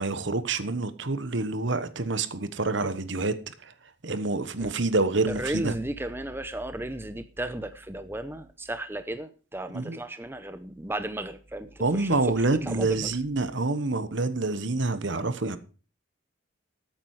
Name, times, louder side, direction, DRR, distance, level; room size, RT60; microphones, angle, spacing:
voice 1, 0.0-3.3 4.0-5.7 9.7-10.0 11.8-15.6, right 3 dB, 60° right, 1.1 m, -27 dB
voice 2, 5.3-13.2, right 1 dB, 10° right, 0.7 m, -34 dB
13.5 x 8.9 x 4.8 m
head